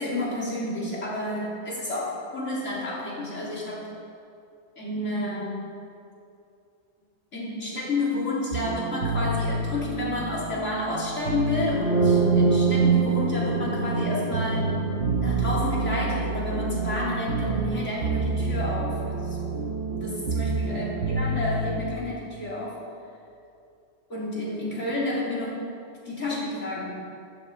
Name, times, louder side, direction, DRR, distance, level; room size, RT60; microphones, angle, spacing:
voice 1, 0.0-3.9 4.8-5.6 7.3-14.7 15.2-19.5 19.9-22.8 24.1-25.6 26.1-26.9, left 2 dB, 90° left, -6 dB, 3.7 m, -30 dB
sound 1, 8.5-22.0, right 3 dB, 60° right, 1.2 m, -29 dB
sound 2, 11.6-19.4, right 4 dB, 65° left, 2.3 m, -26 dB
14.5 x 14.5 x 4.4 m, 2.6 s
omnidirectional pair, 1.2 m